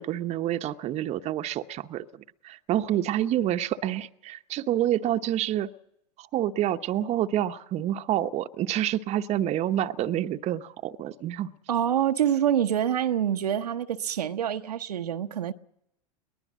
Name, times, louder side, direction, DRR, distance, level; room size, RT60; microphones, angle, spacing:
voice 1, 0.0-5.7 6.2-11.5, right 12 dB, 35° right, 0.9 m, -28 dB
voice 2, 11.7-15.5, right 10 dB, 80° right, 0.8 m, -26 dB
22.5 x 19.5 x 6.2 m
hypercardioid pair, 100°, 20 cm